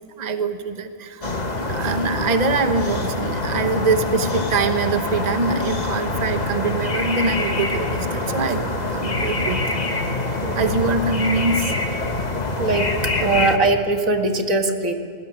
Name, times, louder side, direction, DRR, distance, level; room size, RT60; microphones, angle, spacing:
voice 1, 0.2-9.6 10.5-11.7, right 3 dB, 30° right, 8 dB, 1.2 m, -24 dB
sound 1, 1.2-13.6, left 2 dB, 30° left, 1.6 m, -25 dB
voice 2, 13.2-14.9, right 2 dB, 70° right, 4 dB, 2.2 m, -21 dB
20.5 x 20.0 x 10.0 m, 2.3 s
omnidirectional pair, 1.5 m